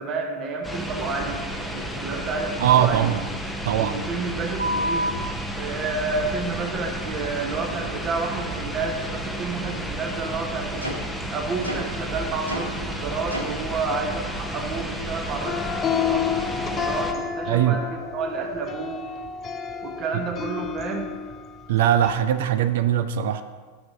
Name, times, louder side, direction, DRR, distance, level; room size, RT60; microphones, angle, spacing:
voice 1, 0.0-3.1 3.8-5.1 5.6-11.0 11.3-19.0 19.8-21.1, right 4 dB, 30° right, 2 dB, 1.2 m, -30 dB
sound 1, 0.6-17.1, equal, 5° left, 0.8 m, -32 dB
voice 2, 2.6-3.2 3.6-4.0 17.5-17.8 20.1-20.2 21.7-23.4, right 10 dB, 55° right, 10 dB, 0.4 m, -21 dB
sound 2, 4.6-5.1 6.1-6.3 6.6-6.7 7.3-7.5 7.8-7.9 8.5-8.6 9.0-9.1 9.6-9.8 10.1-10.2 10.8-11.0 11.6-11.8 12.4-12.6 13.3-13.5 14.1-14.2, equal, 85° right, 1.0 m, -29 dB
sound 3, 15.5-22.1, left 7 dB, 25° left, 0.4 m, -30 dB
6.2 x 6.1 x 6.8 m, 1.5 s
figure-of-eight pair, 90°, 0 cm